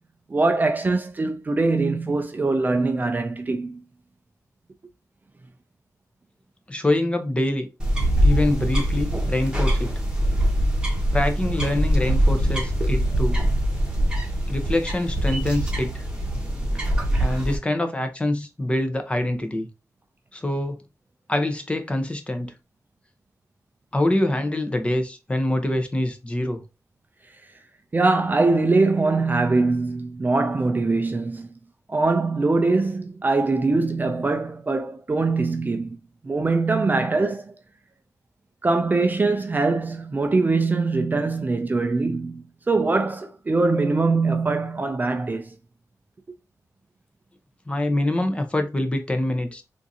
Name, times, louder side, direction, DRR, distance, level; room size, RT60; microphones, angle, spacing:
voice 1, 0.3-3.8 17.1-17.2 27.9-31.5 31.9-35.9 36.2-37.5 38.6-45.4, right 3 dB, 30° right, 0.4 m, -22 dB
voice 2, 6.7-7.7 8.2-9.9 11.1-13.4 14.5-16.0 17.2-19.7 20.3-20.8 21.3-22.5 23.9-26.6 47.7-49.6, left 1 dB, 20° left, 0.7 m, -25 dB
sound 1, 7.8-17.6, equal, 15° right, 1.2 m, -23 dB
3.6 x 2.6 x 2.7 m
wide cardioid pair, 115°, 6 cm